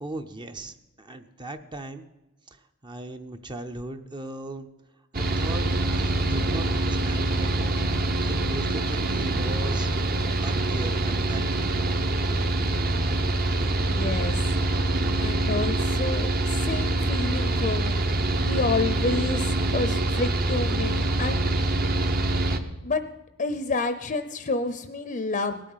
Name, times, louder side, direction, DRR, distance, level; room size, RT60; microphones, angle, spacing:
voice 1, 0.0-2.1 2.8-4.7 5.1-7.8 8.2-10.0 10.4-11.8, right 2 dB, 20° right, 7 dB, 0.7 m, -38 dB
Mechanical fan, 5.1-22.6, right 2 dB, 45° right, 1.0 m, -25 dB
voice 2, 13.7-14.4 15.2-21.5 22.8-23.0 23.4-25.6, left 3 dB, 40° left, 10 dB, 0.6 m, -29 dB
18.5 x 8.5 x 5.6 m, 1.0 s
head